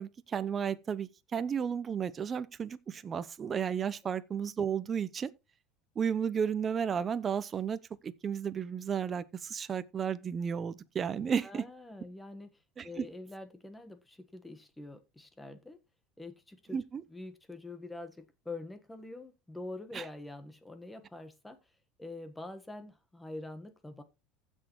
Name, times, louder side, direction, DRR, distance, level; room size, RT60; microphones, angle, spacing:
voice 1, 0.0-5.3 6.0-11.6 12.8-13.1 16.7-17.0 19.9-20.1, right 7 dB, 25° right, 0.7 m, -33 dB
voice 2, 11.4-12.5 12.8-15.8 16.2-16.8 17.1-21.6 22.0-24.0, left 2 dB, 5° left, 1.4 m, -45 dB
15.5 x 6.4 x 3.1 m
cardioid pair, 155°, 0 cm